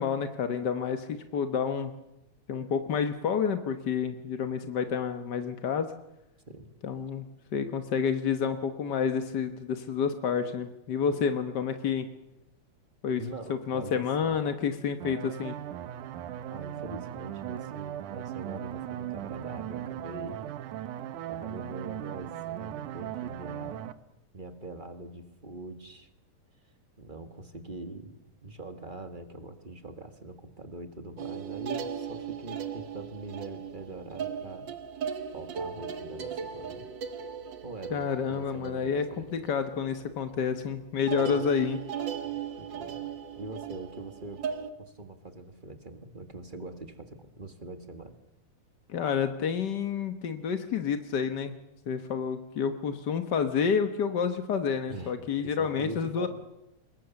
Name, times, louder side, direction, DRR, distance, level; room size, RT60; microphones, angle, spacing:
voice 1, 0.0-1.9 2.5-5.9 6.8-7.2 7.5-12.1 13.0-13.2 13.5-15.5 37.9-39.0 39.3-41.8 48.9-51.5 51.9-56.3, left 6 dB, 55° left, 8 dB, 1.2 m, -29 dB
voice 2, 13.2-14.5 16.5-20.4 21.3-23.8 24.3-26.1 27.0-34.7 35.3-36.9 37.6-39.5 41.1-41.5 42.2-43.1 43.4-44.5 44.8-48.2 54.9-55.1 55.4-56.3, right 2 dB, 25° right, 8 dB, 1.0 m, -43 dB
sound 1, 15.0-23.9, right 11 dB, 80° right, 2.4 m, -38 dB
sound 2, 31.2-40.0 40.3-40.7 41.1-44.7, right 7 dB, 45° right, 1.7 m, -37 dB
26.5 x 22.0 x 7.1 m, 0.92 s
omnidirectional pair, 3.5 m